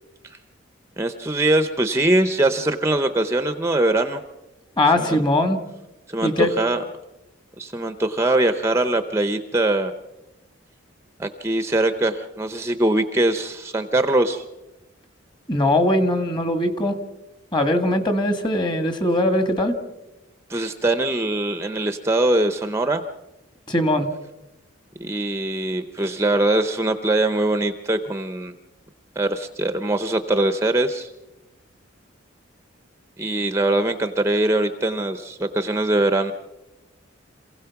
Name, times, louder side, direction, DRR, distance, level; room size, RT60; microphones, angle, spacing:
voice 1, 1.0-4.2 5.0-5.2 6.1-6.8 7.6-9.9 11.2-14.4 20.5-23.0 25.0-28.5 29.2-31.1 33.2-36.3, right 2 dB, 15° right, 9 dB, 0.7 m, -22 dB
voice 2, 4.8-5.6 6.2-6.5 15.5-17.0 17.5-19.8 23.7-24.1, left 1 dB, 25° left, 8 dB, 1.7 m, -20 dB
27.0 x 16.5 x 5.9 m, 1.0 s
head